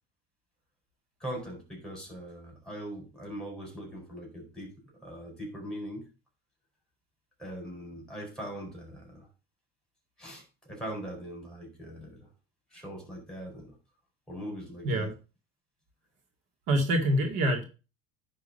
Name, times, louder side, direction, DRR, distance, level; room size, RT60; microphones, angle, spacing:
voice 1, 1.2-4.8 5.0-6.1 7.4-9.3 10.2-12.3 12.7-13.7 14.3-15.1, equal, 5° left, 1 dB, 4.5 m, -41 dB
voice 2, 16.7-17.6, right 1 dB, 70° right, 3 dB, 2.2 m, -25 dB
10.5 x 3.8 x 5.4 m, 0.32 s
cardioid pair, 125°, 20 cm